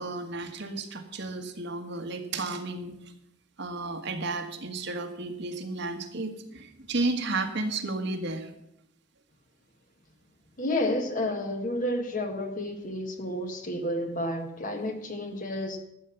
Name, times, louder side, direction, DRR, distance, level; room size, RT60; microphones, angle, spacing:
voice 1, 0.0-3.0 3.6-8.5, right 3 dB, 60° right, 5 dB, 1.6 m, -33 dB
voice 2, 10.6-15.8, left 1 dB, 40° left, 6 dB, 1.6 m, -31 dB
12.5 x 8.1 x 7.1 m, 0.80 s
head